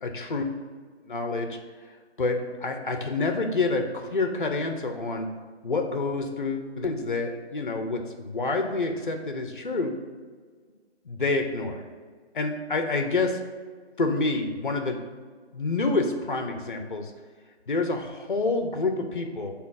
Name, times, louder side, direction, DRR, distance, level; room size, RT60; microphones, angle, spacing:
voice 1, 0.0-0.4 1.1-1.6 2.2-5.3 5.6-9.9 11.1-11.8 12.3-13.3 14.0-15.0 15.5-17.1 17.7-19.5, left 3 dB, 50° left, 4 dB, 0.4 m, -28 dB
6.7 x 2.3 x 2.4 m, 1.6 s
figure-of-eight pair, 160°, 34 cm